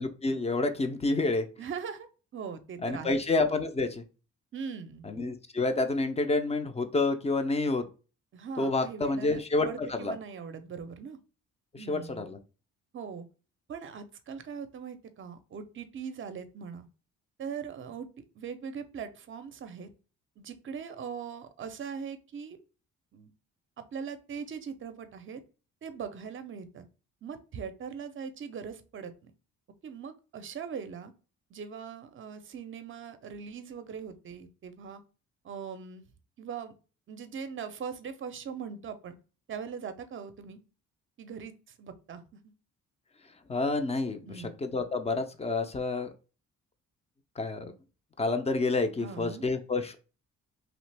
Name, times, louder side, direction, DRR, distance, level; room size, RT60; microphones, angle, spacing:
voice 1, 0.0-1.5 2.8-4.0 5.0-7.8 8.6-10.1 11.7-12.4 43.5-44.3 44.6-46.1 47.4-47.7 48.2-50.0, left 3 dB, 20° left, 8 dB, 0.5 m, -29 dB
voice 2, 1.6-2.1 2.3-3.2 4.5-5.1 8.3-11.2 11.7-12.2 12.9-13.3 13.7-16.9 17.4-19.9 20.4-22.6 23.1-23.3 23.9-25.4 25.8-26.8 27.2-29.3 29.8-31.1 31.5-35.0 35.4-36.1 36.4-36.7 37.1-39.1 39.5-40.6 41.2-42.5 44.2-44.5 49.0-49.5, right 6 dB, 40° right, 10 dB, 0.5 m, -40 dB
3.0 x 2.4 x 3.2 m, 0.34 s
cardioid pair, 90°, 30 cm